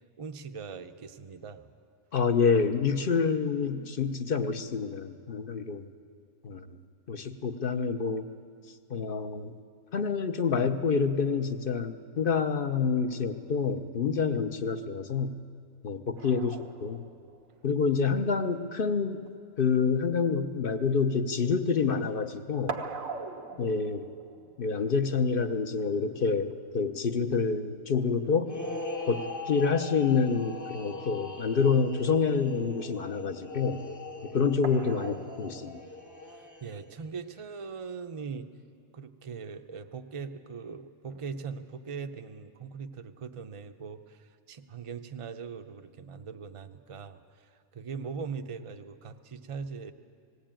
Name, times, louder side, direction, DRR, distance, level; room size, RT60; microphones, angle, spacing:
voice 1, 0.2-1.7 36.3-38.5 38.9-47.2 47.7-49.9, right 5 dB, 35° right, 7 dB, 0.6 m, -40 dB
voice 2, 2.1-5.9 6.4-6.8 7.1-8.3 8.9-9.5 9.9-15.4 15.8-17.0 17.6-19.2 19.6-22.8 23.6-24.0 24.6-28.5 29.1-33.8 34.2-35.8, left 5 dB, 50° left, 8 dB, 0.9 m, -27 dB
sound 1, 16.2-21.9 22.2-29.2 30.6-30.7 31.0-31.1 34.6-35.8, right 4 dB, 85° right, 1.5 m, -44 dB
sound 2, 28.4-37.0, left 2 dB, 15° left, 0.8 m, -40 dB
19.0 x 16.5 x 8.9 m, 2.2 s
omnidirectional pair, 1.4 m